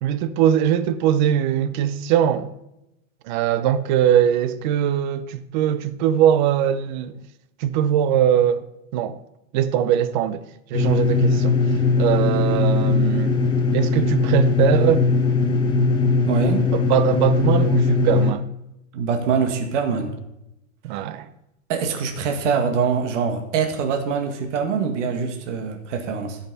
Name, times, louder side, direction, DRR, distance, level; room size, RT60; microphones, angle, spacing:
voice 1, 0.0-2.5 3.3-7.2 7.6-8.6 8.9-9.2 9.5-11.6 12.0-13.4 13.7-15.1 16.7-18.5 20.8-21.3, right 10 dB, 35° right, 0.7 m, -21 dB
sound 1, 10.7-18.3, left 3 dB, 10° left, 1.0 m, -19 dB
voice 2, 16.3-16.7 18.9-20.1 21.7-26.4, right 6 dB, 60° right, 1.9 m, -24 dB
16.5 x 5.8 x 4.0 m
supercardioid pair, 155°, 41 cm